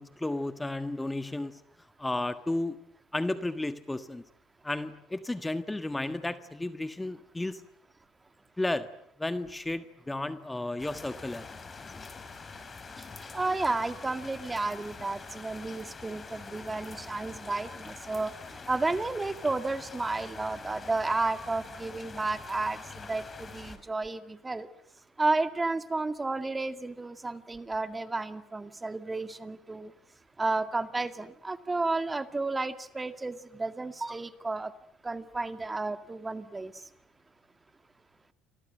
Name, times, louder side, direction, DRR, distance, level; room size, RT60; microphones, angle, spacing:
voice 1, 0.0-1.6 2.0-2.8 3.1-4.2 4.6-7.6 8.6-8.9 9.2-11.5, left 2 dB, 10° left, 10 dB, 1.5 m, -33 dB
sound 1, 10.8-23.8, left 4 dB, 30° left, 4.8 m, -45 dB
voice 2, 13.3-18.3 18.7-24.7 25.2-29.9 30.4-34.7 35.0-36.7, right 3 dB, 20° right, 10 dB, 2.1 m, -32 dB
29.5 x 24.5 x 7.9 m, 0.69 s
hypercardioid pair, 75°, 0 cm